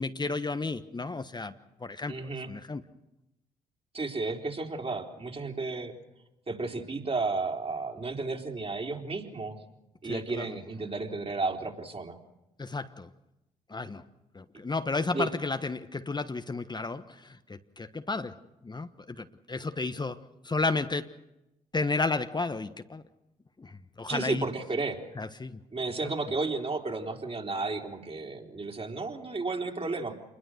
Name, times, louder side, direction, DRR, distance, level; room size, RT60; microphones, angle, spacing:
voice 1, 0.0-1.5 1.8-2.1 2.5-2.8 10.0-10.4 12.6-13.1 13.7-14.0 14.3-18.3 18.6-21.1 21.7-23.0 23.6-24.4 25.2-25.6, left 3 dB, 25° left, 9 dB, 1.2 m, -32 dB
voice 2, 2.1-2.5 3.9-5.9 6.5-9.6 10.0-12.2 15.1-15.3 24.1-25.0 25.7-30.2, right 3 dB, 35° right, 3 dB, 4.1 m, -33 dB
27.5 x 21.5 x 6.5 m, 0.94 s
hypercardioid pair, 45°, 17 cm